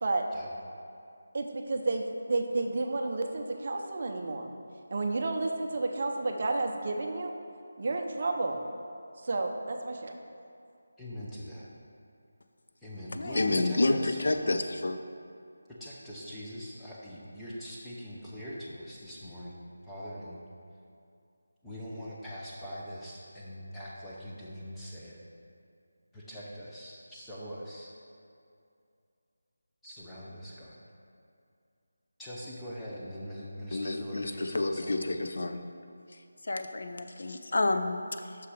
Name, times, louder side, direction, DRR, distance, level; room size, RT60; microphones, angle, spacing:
voice 1, 1.3-4.5 4.9-7.3 7.8-8.6 9.2-10.2, right 2 dB, 35° right, 3 dB, 0.5 m, -31 dB
voice 2, 11.0-11.7 12.8-14.6 15.7-20.4 21.6-25.2 26.1-27.9 29.8-30.8 32.2-35.0, equal, 5° left, -8 dB, 0.6 m, -42 dB
voice 3, 13.1-15.0 33.7-35.6 36.4-38.4, left 2 dB, 55° left, 7 dB, 0.4 m, -29 dB
6.1 x 5.7 x 4.8 m, 2.5 s
figure-of-eight pair, 175°, 0 cm